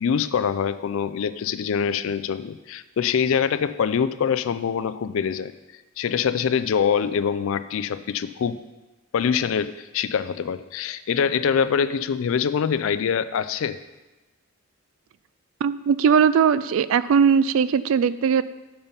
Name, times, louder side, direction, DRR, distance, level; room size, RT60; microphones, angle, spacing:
voice 1, 0.0-5.5 6.0-8.6 9.1-13.8, left 7 dB, 70° left, 13 dB, 0.3 m, -24 dB
voice 2, 15.6-18.4, right 7 dB, 70° right, 16 dB, 0.3 m, -19 dB
7.0 x 5.5 x 5.5 m, 1.1 s
head